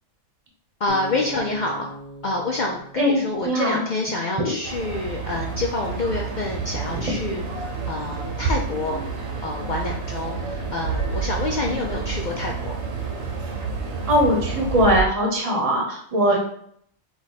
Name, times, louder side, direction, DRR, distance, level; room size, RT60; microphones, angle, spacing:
voice 1, 0.8-1.9 2.2-7.5 7.9-9.0 9.4-12.7 16.3-16.4, left 2 dB, 80° left, 0 dB, 0.4 m, -27 dB
sound 1, 0.9-4.0, left 2 dB, 35° left, 1.1 m, -39 dB
voice 2, 3.0-3.8 4.4-4.5 14.1-16.4, equal, 30° right, 0 dB, 0.9 m, -20 dB
sound 2, 4.6-15.0, right 4 dB, 60° right, 1.1 m, -29 dB
4.7 x 2.4 x 4.0 m, 0.67 s
omnidirectional pair, 1.4 m